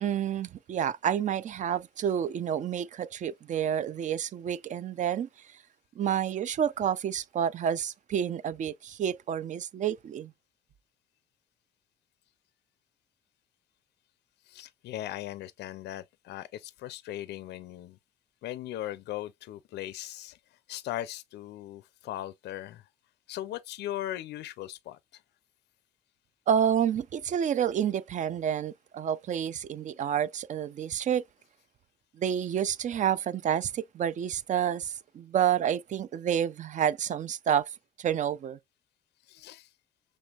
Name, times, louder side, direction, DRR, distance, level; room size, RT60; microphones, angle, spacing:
voice 1, 0.0-5.6 6.0-10.3 26.5-31.2 32.2-37.7 38.0-38.6, right 9 dB, 45° right, 0.4 m, -29 dB
voice 2, 14.5-18.0 18.4-22.9 23.3-25.2 39.2-39.7, left 13 dB, 70° left, 0.4 m, -39 dB
6.1 x 3.1 x 2.3 m
cardioid pair, 110°, 18 cm